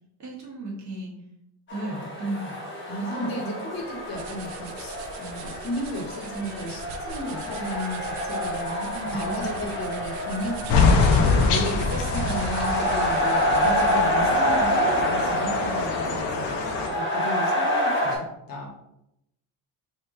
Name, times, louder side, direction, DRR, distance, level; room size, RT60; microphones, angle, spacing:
voice 1, 0.2-1.1 1.7-2.5 3.0-3.3 8.9-9.5, right 2 dB, 40° right, -3 dB, 1.3 m, -34 dB
sound 1, 1.7-18.2, equal, 25° left, 1.0 m, -27 dB
voice 2, 2.9-10.6 11.2-16.6 16.9-18.7, equal, 50° left, 1 dB, 1.2 m, -34 dB
sound 2, 3.8-14.2, right 5 dB, 65° right, 0.5 m, -40 dB
sound 3, 10.7-16.9, left 4 dB, 70° left, 0.8 m, -24 dB
3.4 x 3.1 x 3.6 m, 0.82 s
cardioid pair, 145°, 43 cm